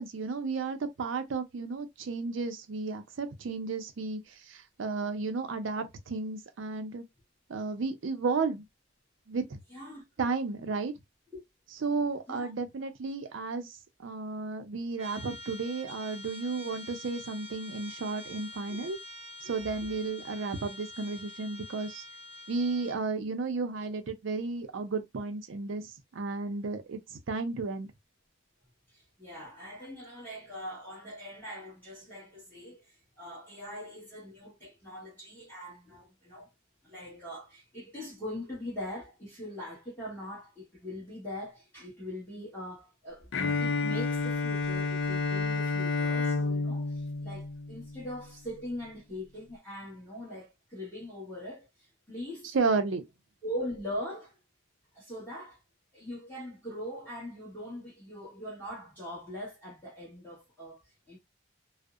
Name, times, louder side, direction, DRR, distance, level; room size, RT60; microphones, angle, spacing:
voice 1, 0.0-4.2 4.5-7.0 7.5-8.6 9.3-9.6 10.2-10.9 11.8-13.7 14.0-19.0 19.4-22.0 22.5-27.9 52.5-53.0, right 4 dB, 75° right, 0.5 m, -33 dB
voice 2, 9.7-10.0 11.3-11.4 12.3-12.5 18.7-18.9 28.9-36.5 36.8-52.6 53.4-54.4 54.9-55.6 55.9-60.8 61.1-61.2, left 1 dB, 10° left, 1.1 m, -41 dB
Trumpet, 15.0-23.0, left 1 dB, 35° right, 0.8 m, -46 dB
Bowed string instrument, 43.3-48.2, left 3 dB, 85° left, 0.5 m, -30 dB
2.6 x 2.0 x 2.4 m
head